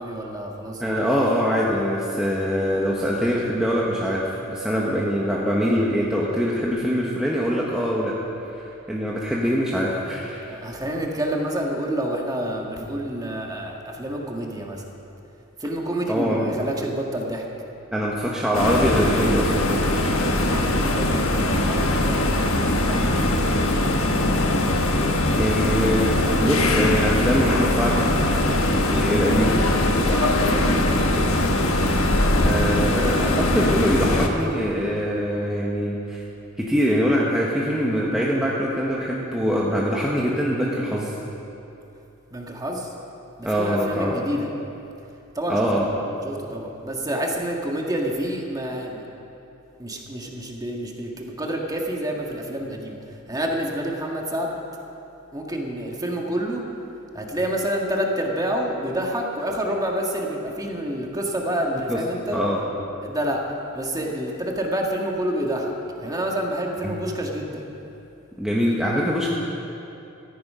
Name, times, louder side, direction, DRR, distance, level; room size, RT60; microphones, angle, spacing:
voice 1, 0.0-1.2 10.4-14.9 15.6-17.4 20.4-23.6 28.9-29.1 30.0-31.3 42.3-42.9 43.4-44.5 45.3-45.7 46.2-49.0 49.8-54.6 55.3-56.6 57.1-62.4 63.0-65.7 66.0-67.6, right 1 dB, 20° right, 0 dB, 1.7 m, -28 dB
voice 2, 0.8-8.1 8.5-8.6 8.9-10.5 16.1-16.5 17.9-20.3 25.4-28.4 28.9-29.6 32.4-36.2 36.6-41.1 43.4-44.1 45.5-45.9 61.9-62.0 62.3-62.6 66.8-67.0 68.4-69.3, equal, 5° right, -5 dB, 1.3 m, -23 dB
sound 1, 18.5-34.3, left 1 dB, 75° left, 1.3 m, -21 dB
14.0 x 14.0 x 5.6 m, 2.9 s
head